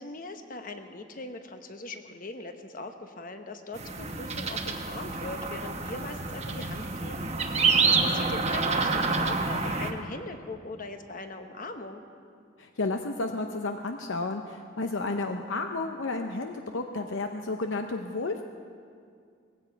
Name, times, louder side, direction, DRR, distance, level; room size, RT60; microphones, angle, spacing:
voice 1, 0.0-12.0, left 2 dB, 45° left, 6 dB, 1.0 m, -40 dB
sound 1, 3.7-9.9, right 4 dB, 35° right, 1.1 m, -28 dB
voice 2, 12.6-18.4, left 3 dB, 75° left, 5 dB, 0.7 m, -32 dB
19.0 x 16.0 x 4.7 m, 2.2 s
head